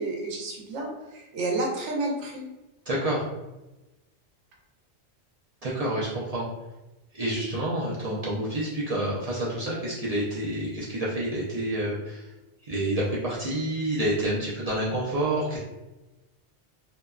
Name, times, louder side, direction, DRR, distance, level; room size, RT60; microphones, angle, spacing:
voice 1, 0.0-2.4, right 2 dB, 85° right, -1 dB, 1.0 m, -30 dB
voice 2, 2.9-3.2 5.6-6.5 7.1-12.3 12.6-15.6, right 1 dB, 55° right, -7 dB, 0.4 m, -28 dB
2.7 x 2.2 x 2.2 m, 1.0 s
omnidirectional pair, 1.2 m